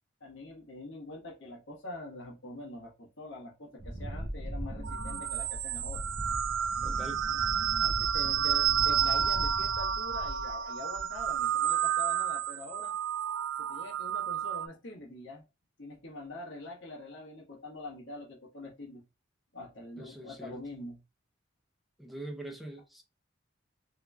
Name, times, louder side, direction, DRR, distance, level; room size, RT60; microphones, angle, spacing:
voice 1, 0.2-6.1 7.8-12.9 13.6-15.4 15.8-19.0 19.5-21.0, left 2 dB, 65° left, 1.2 m, -44 dB
Wind, 3.8-10.6 10.9-11.4, right 1 dB, 15° left, 1.3 m, -39 dB
sound 1, 4.8-14.7, right 9 dB, 70° right, 0.3 m, -30 dB
voice 2, 6.8-7.2 20.0-20.6 22.0-23.0, right 1 dB, ahead, 0.5 m, -43 dB
3.7 x 3.0 x 2.2 m
head